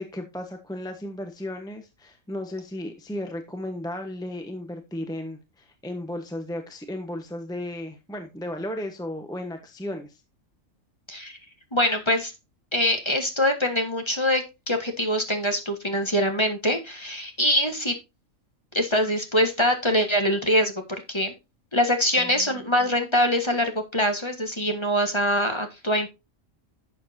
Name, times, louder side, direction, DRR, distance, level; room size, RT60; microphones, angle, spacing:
voice 1, 0.0-10.2 22.2-22.5, left 1 dB, 5° left, 5 dB, 1.2 m, -35 dB
voice 2, 11.7-12.3 12.7-18.0 18.7-20.8 21.1-21.3 21.7-26.1, equal, 20° left, 5 dB, 1.6 m, -24 dB
11.5 x 7.6 x 2.8 m, 0.24 s
omnidirectional pair, 1.3 m